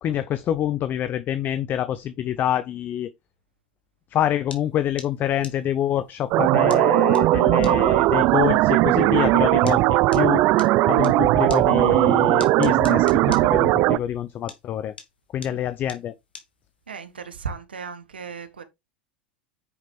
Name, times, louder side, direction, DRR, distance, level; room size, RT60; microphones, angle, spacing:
voice 1, 0.0-3.1 4.1-9.8 10.1-10.4 10.9-14.9 15.3-16.1, left 11 dB, 35° left, 0.7 m, -26 dB
sound 1, 4.5-11.2 11.5-14.2 14.5-17.1, left 5 dB, 85° left, 1.8 m, -42 dB
sound 2, 6.3-14.0, right 18 dB, 45° right, 0.5 m, -18 dB
voice 2, 16.9-18.6, right 6 dB, 85° right, 1.5 m, -35 dB
9.6 x 5.1 x 3.6 m
hypercardioid pair, 90°, 5 cm